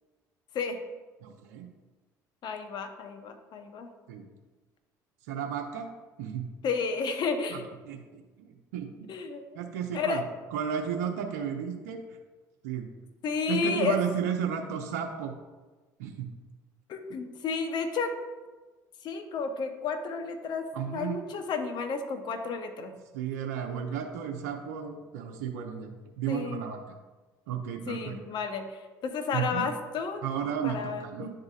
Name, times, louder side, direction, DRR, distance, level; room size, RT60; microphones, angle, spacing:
voice 1, 1.2-1.7 4.1-4.2 5.3-5.9 6.2-6.5 7.5-8.9 9.5-10.2 10.5-12.0 12.6-12.9 13.5-15.3 16.0-16.3 20.7-21.2 23.1-25.9 26.2-27.0 27.5-28.2 29.3-29.7 30.2-31.3, right 8 dB, 80° right, 2 dB, 0.7 m, -33 dB
voice 2, 2.4-3.9 6.6-7.6 9.1-9.6 9.9-10.2 13.2-14.0 16.9-18.1 19.0-20.6 20.9-22.9 26.3-26.6 27.9-30.2 30.6-31.3, left 5 dB, 55° left, 6 dB, 0.8 m, -32 dB
10.5 x 3.8 x 2.4 m, 1.3 s
hypercardioid pair, 70°, 9 cm